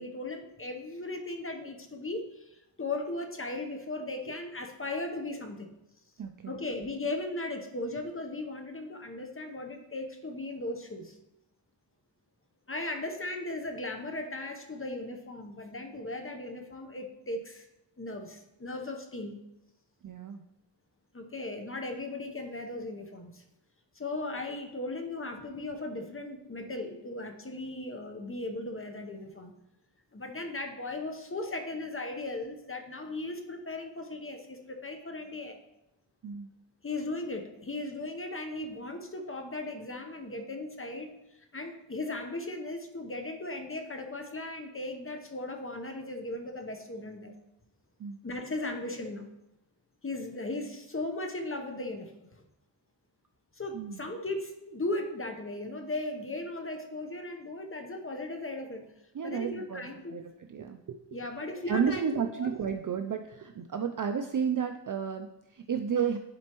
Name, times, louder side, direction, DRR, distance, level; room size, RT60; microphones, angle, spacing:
voice 1, 0.0-5.7 6.5-11.1 12.7-17.7 18.0-19.4 21.1-23.4 23.9-29.5 30.1-35.6 36.8-47.3 48.2-49.3 50.0-52.4 53.5-58.8 59.2-60.2 61.1-62.1 62.3-62.5, left 2 dB, 30° left, 4 dB, 0.9 m, -37 dB
voice 2, 6.2-6.6 20.0-20.4 36.2-36.5 48.0-48.2 53.7-54.1 59.1-61.0 61.7-66.2, right 7 dB, 45° right, 5 dB, 0.5 m, -32 dB
10.5 x 4.3 x 3.0 m, 0.89 s
wide cardioid pair, 90°, 44 cm